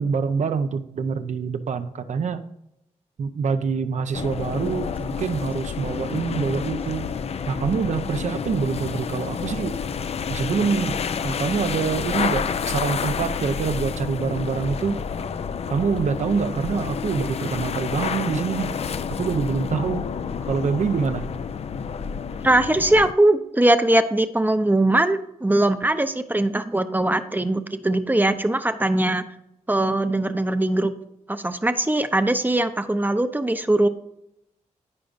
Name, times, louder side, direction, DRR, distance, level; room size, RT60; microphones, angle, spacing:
voice 1, 0.0-2.4 3.2-7.1 7.5-9.8 10.3-11.0 11.2-15.0 15.7-18.7 19.2-20.1 20.5-21.3, right 5 dB, 65° right, 9 dB, 0.8 m, -25 dB
sound 1, 4.1-23.1, left 6 dB, 55° left, 0.5 m, -29 dB
voice 2, 22.4-29.3 29.7-30.9 31.3-33.9, right 1 dB, 15° right, 9 dB, 0.6 m, -21 dB
14.5 x 5.1 x 2.6 m, 0.81 s
cardioid pair, 80°, 13 cm